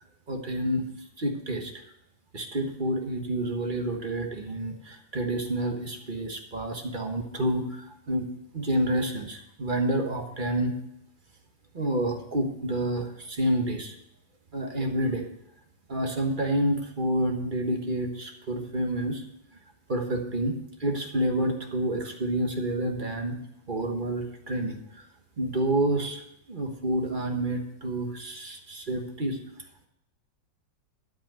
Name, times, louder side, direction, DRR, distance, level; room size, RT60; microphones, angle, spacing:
voice 1, 0.3-0.8 1.2-1.8 2.3-8.3 8.5-10.7 11.7-13.9 14.5-15.2 15.9-19.2 19.9-20.5 20.8-23.4 23.7-25.0 25.4-26.2 26.5-29.4, right 1 dB, 30° right, 3 dB, 1.3 m, -29 dB
12.0 x 5.4 x 7.5 m, 0.78 s
omnidirectional pair, 2.0 m